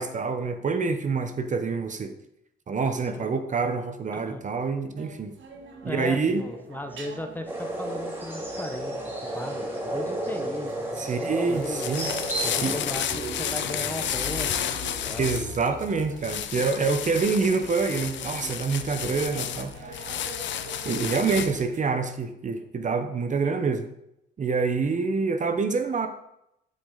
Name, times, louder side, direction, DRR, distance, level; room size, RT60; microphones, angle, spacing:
voice 1, 0.0-2.1 2.7-5.3 5.8-6.5 11.0-12.1 12.6-12.7 15.2-20.0 20.8-23.9 24.4-26.1, right 4 dB, 40° right, 8 dB, 0.8 m, -26 dB
sound 1, 5.0-21.9, right 4 dB, 70° right, 1.6 m, -43 dB
voice 2, 5.8-11.9 12.4-14.7 15.0-15.3 19.0-19.2, left 1 dB, 10° left, 6 dB, 1.0 m, -37 dB
sound 2, 7.5-12.9, right 1 dB, 10° right, 2.5 m, -32 dB
sound 3, 11.5-21.7, left 10 dB, 65° left, 0.7 m, -32 dB
12.5 x 5.1 x 3.9 m, 0.81 s
cardioid pair, 90°, 20 cm